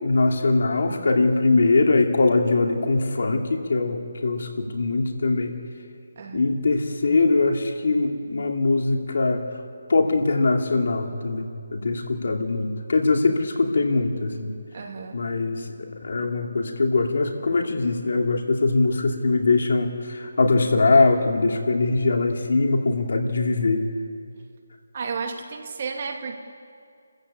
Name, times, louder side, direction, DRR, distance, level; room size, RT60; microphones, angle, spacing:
voice 1, 0.0-5.5 6.3-9.4 9.9-14.5 15.1-15.6 16.0-23.8, left 3 dB, 60° left, 3 dB, 2.6 m, -22 dB
voice 2, 6.2-6.5 14.7-15.2 24.9-26.4, right 5 dB, 40° right, 3 dB, 2.3 m, -32 dB
29.5 x 14.5 x 8.6 m, 2.3 s
hypercardioid pair, 170°, 0 cm